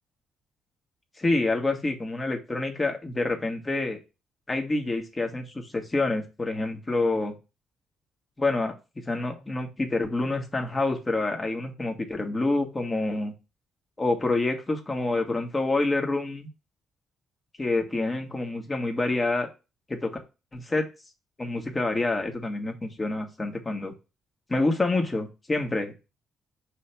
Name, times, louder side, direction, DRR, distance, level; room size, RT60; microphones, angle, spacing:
voice 1, 1.2-4.0 4.5-7.3 8.4-13.3 14.0-16.5 17.6-19.5 19.9-20.2 20.5-20.8 21.4-23.9 24.5-25.9, left 2 dB, 25° left, 3 dB, 1.6 m, -27 dB
5.5 x 3.4 x 5.7 m, 0.28 s
cardioid pair, 90°, 0 cm